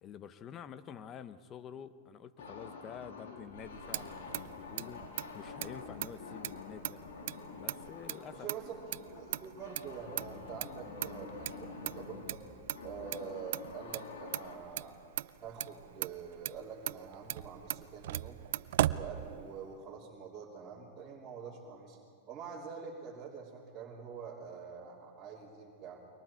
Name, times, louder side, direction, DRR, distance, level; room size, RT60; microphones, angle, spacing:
voice 1, 0.0-7.0 7.5-8.5, left 8 dB, 30° left, 13 dB, 1.0 m, -48 dB
sound 1, 2.4-14.6, left 4 dB, 85° left, 3.1 m, -48 dB
Motor vehicle (road), 3.5-19.8, right 14 dB, 70° right, 0.4 m, -39 dB
voice 2, 8.3-12.4 12.8-15.0 15.4-18.4 18.8-22.0 22.3-26.0, right 6 dB, 25° right, -7 dB, 3.4 m, -46 dB
29.0 x 23.5 x 4.5 m, 2.3 s
hypercardioid pair, 125°, 0 cm